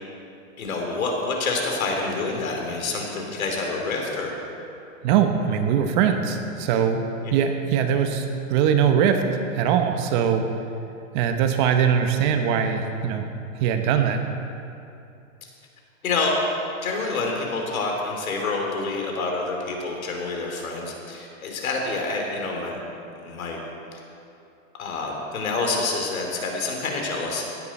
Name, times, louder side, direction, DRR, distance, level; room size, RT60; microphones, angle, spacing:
voice 1, 0.6-4.3 7.2-7.3 16.0-16.3 16.8-22.8 23.1-23.6 24.8-27.4, left 3 dB, 90° left, 1 dB, 3.1 m, -27 dB
voice 2, 5.0-7.0 7.3-9.2 9.5-10.4 11.1-13.2 13.6-14.2, right 8 dB, 35° right, 6 dB, 1.0 m, -21 dB
16.5 x 10.0 x 4.2 m, 2.7 s
hypercardioid pair, 150°, 40 cm